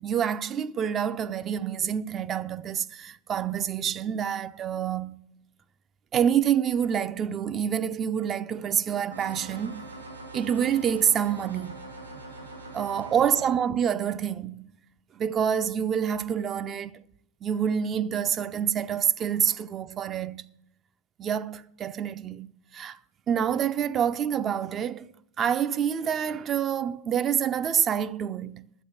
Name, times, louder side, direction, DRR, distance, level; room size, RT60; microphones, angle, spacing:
voice 1, 0.0-5.2 6.1-9.8 10.3-11.8 12.7-14.8 15.1-16.9 17.4-20.4 21.2-23.0 23.3-28.7, right 8 dB, 25° right, 0.5 m, -27 dB
sound 1, 9.1-13.5, right 2 dB, 85° right, 4.3 m, -42 dB
11.0 x 8.4 x 7.6 m
figure-of-eight pair, 90°, 0 cm